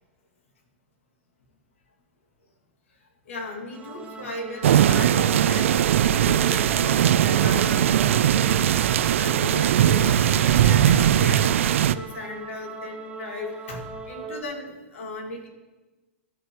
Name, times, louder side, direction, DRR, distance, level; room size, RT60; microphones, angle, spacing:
voice 1, 3.3-8.2 9.1-15.5, left 2 dB, 75° left, -1 dB, 2.4 m, -36 dB
sound 1, 3.7-14.4, right 3 dB, 15° right, 1.1 m, -39 dB
sound 2, 4.6-11.9, right 10 dB, 75° right, 0.4 m, -20 dB
14.0 x 6.4 x 3.1 m, 1.2 s
hypercardioid pair, 125°, 7 cm